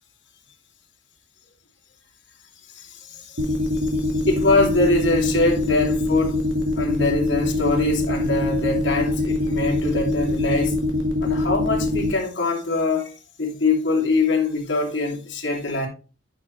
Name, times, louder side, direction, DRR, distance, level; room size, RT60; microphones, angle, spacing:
voice 1, 2.7-6.5 6.7-10.8 11.2-13.1 13.4-15.9, left 3 dB, 70° left, 2.7 m, -23 dB
sound 1, 3.4-12.1, left 2 dB, 70° right, 1.8 m, -23 dB
9.4 x 5.8 x 3.2 m
head